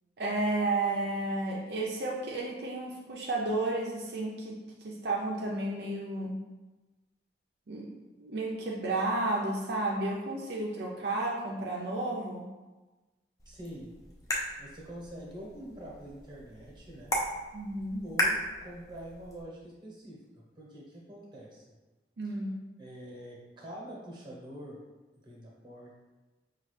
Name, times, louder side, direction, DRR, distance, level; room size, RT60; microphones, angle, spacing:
voice 1, 0.2-6.4 7.7-7.9 8.2-12.5 17.5-18.0 22.2-22.5, right 2 dB, 65° right, -3 dB, 0.5 m, -32 dB
sound 1, 13.4-19.4, equal, 20° left, 0.5 m, -36 dB
voice 2, 13.5-13.9 14.6-17.1 18.0-20.2 20.6-21.6 22.2-22.3 22.8-24.8 25.2-26.0, right 1 dB, 25° right, -2 dB, 1.0 m, -45 dB
5.2 x 2.4 x 3.2 m, 1.2 s
head